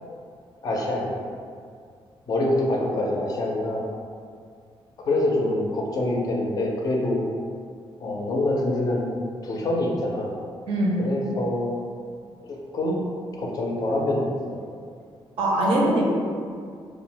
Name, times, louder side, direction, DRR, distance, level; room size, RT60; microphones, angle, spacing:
voice 1, 0.6-1.3 2.3-3.8 5.1-7.2 8.0-9.2 9.4-10.4 11.0-11.7 12.5-13.0 13.4-14.6, left 1 dB, 40° left, -1 dB, 0.4 m, -25 dB
voice 2, 10.7-11.0 15.4-16.0, right 1 dB, 75° right, -3 dB, 0.6 m, -22 dB
2.3 x 2.0 x 3.7 m, 2.2 s
cardioid pair, 160°, 9 cm